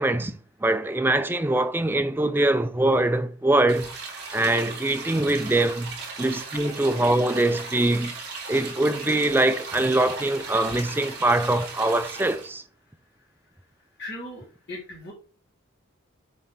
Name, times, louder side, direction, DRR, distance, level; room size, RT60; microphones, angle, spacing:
voice 1, 0.0-3.9 4.3-8.1 8.5-12.6, right 2 dB, 10° right, 0.4 m, -23 dB
sound 1, 3.7-12.5, right 4 dB, 50° right, 3.2 m, -37 dB
voice 2, 14.0-15.1, left 1 dB, 50° left, 1.9 m, -38 dB
7.4 x 3.3 x 5.8 m
head